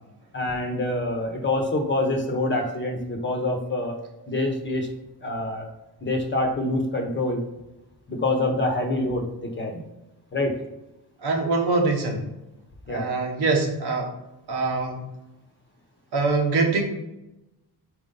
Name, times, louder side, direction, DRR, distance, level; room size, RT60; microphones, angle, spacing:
voice 1, 0.3-4.0 4.3-4.9 5.2-5.7 6.0-7.4 8.1-9.7 10.3-10.6 12.9-13.1, left 2 dB, 30° left, 2 dB, 1.0 m, -26 dB
voice 2, 11.2-12.3 12.9-14.1 14.5-15.0 16.1-16.8, right 3 dB, 70° right, 2 dB, 1.3 m, -23 dB
5.1 x 4.9 x 3.8 m, 0.95 s
wide cardioid pair, 165°, 40 cm